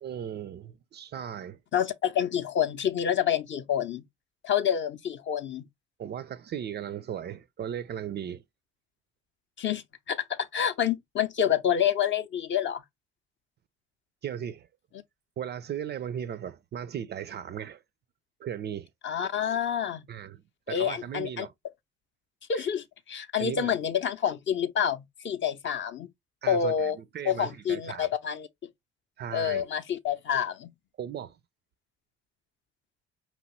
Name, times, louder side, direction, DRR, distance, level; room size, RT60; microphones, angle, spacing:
voice 1, 0.0-1.6 6.0-8.4 14.2-14.7 15.4-17.8 18.4-18.9 20.1-20.4 20.7-21.5 22.5-22.7 23.4-23.7 26.4-28.1 29.2-29.7 31.0-31.4, right 9 dB, 30° right, 0.4 m, -37 dB
voice 2, 1.7-4.0 4.4-5.7 9.6-12.8 19.0-20.1 20.7-21.5 22.5-26.1 26.5-27.0 27.2-28.5 29.3-30.7, left 8 dB, 35° left, 0.6 m, -28 dB
4.9 x 3.0 x 3.0 m
figure-of-eight pair, 55°, 33 cm